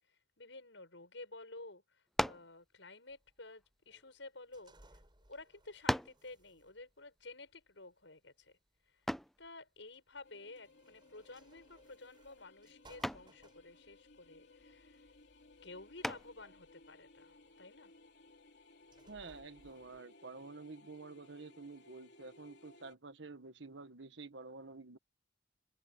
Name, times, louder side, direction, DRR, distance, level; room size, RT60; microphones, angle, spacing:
voice 1, 0.1-4.7 5.3-8.6 8.9-9.0 9.4-15.0 15.6-17.9, left 2 dB, 80° left, 7.4 m, -53 dB
sound 1, 2.1-2.6 3.5-4.7 5.3-5.4 5.9-6.3 9.1-9.4 11.3-11.7 12.1-12.4 13.0-13.4 16.0-16.5, equal, ahead, 0.5 m, -37 dB
sound 2, 3.1-20.0, right 2 dB, 25° right, 7.6 m, -67 dB
sound 3, 10.2-22.9, left 2 dB, 65° left, 3.6 m, -62 dB
voice 2, 19.1-25.0, right 3 dB, 75° right, 1.5 m, -50 dB
head